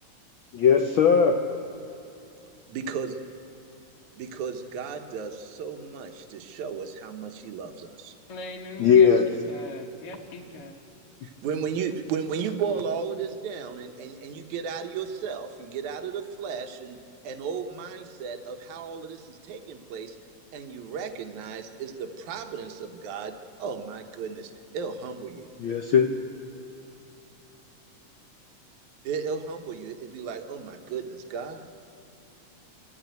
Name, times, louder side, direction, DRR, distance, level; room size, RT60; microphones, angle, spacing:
voice 1, 0.5-1.4 8.8-9.3 25.6-26.1, left 7 dB, 80° left, 4 dB, 1.1 m, -18 dB
voice 2, 2.7-3.2 4.1-8.1 11.2-17.0 17.2-20.2 20.5-23.3 23.6-25.5 29.0-31.7, right 6 dB, 80° right, 6 dB, 2.5 m, -34 dB
voice 3, 8.3-10.8, left 2 dB, 55° left, 0 dB, 2.2 m, -40 dB
24.0 x 13.5 x 9.3 m, 2.8 s
omnidirectional pair, 3.4 m